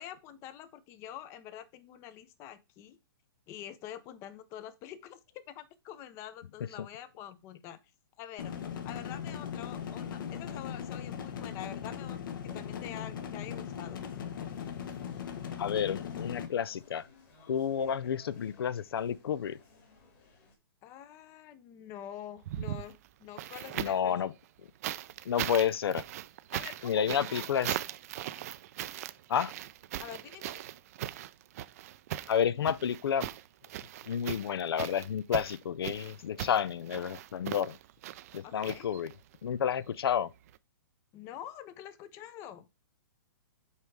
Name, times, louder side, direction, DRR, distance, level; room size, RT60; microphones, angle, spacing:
voice 1, 0.0-3.0 3.5-5.2 5.5-7.8 8.2-8.5 8.8-14.0 17.9-18.1 20.8-24.2 26.5-27.5 30.0-30.6 38.4-38.9 41.1-42.7, left 11 dB, 20° left, 0.5 m, -46 dB
sound 1, 8.4-16.5, left 8 dB, 60° left, 1.0 m, -39 dB
sound 2, 14.0-20.6, left 4 dB, 40° left, 2.3 m, -60 dB
voice 2, 15.6-17.1 17.5-19.6 23.8-24.3 25.3-26.0 26.8-27.8 29.3-29.5 32.3-33.3 34.1-37.8 38.3-39.1 39.4-40.3, left 8 dB, 85° left, 0.4 m, -30 dB
sound 3, 22.4-24.1 24.8-39.3 40.5-40.6, right 13 dB, 40° right, 0.4 m, -39 dB
5.6 x 4.6 x 4.7 m
hypercardioid pair, 155°, 12 cm